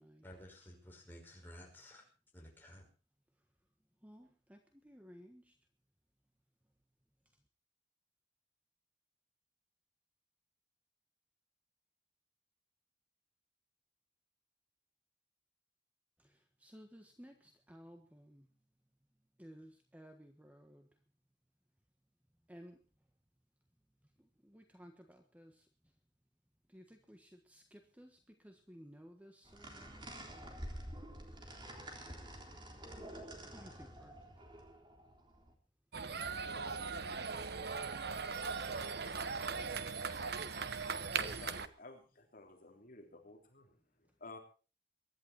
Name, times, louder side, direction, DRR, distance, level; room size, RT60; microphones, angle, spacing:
voice 1, 0.2-2.0 2.3-2.8, equal, 10° left, 0 dB, 5.6 m, -54 dB
voice 2, 4.0-5.5 16.2-18.5 19.4-20.9 22.5-22.8 24.2-25.7 26.7-30.7 33.5-34.1, equal, 10° right, 5 dB, 1.4 m, -57 dB
sound 1, 29.4-35.5, right 1 dB, 25° right, 3.6 m, -49 dB
sound 2, 35.9-41.7, right 5 dB, 60° right, 1.0 m, -39 dB
voice 3, 41.1-44.4, left 2 dB, 50° left, 3 dB, 3.4 m, -53 dB
23.0 x 11.5 x 4.3 m, 0.35 s
head